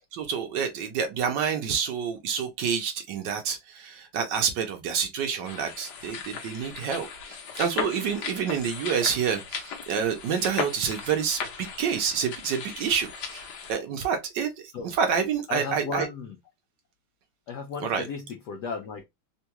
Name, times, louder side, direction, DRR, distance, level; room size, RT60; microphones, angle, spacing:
voice 1, 0.1-16.1 17.8-18.1, right 7 dB, 75° right, 1.1 m, -28 dB
sound 1, 5.4-13.7, left 6 dB, 60° left, 1.2 m, -37 dB
voice 2, 15.5-16.4 17.5-19.0, left 5 dB, 80° left, 0.9 m, -34 dB
3.6 x 2.2 x 2.8 m
omnidirectional pair, 2.3 m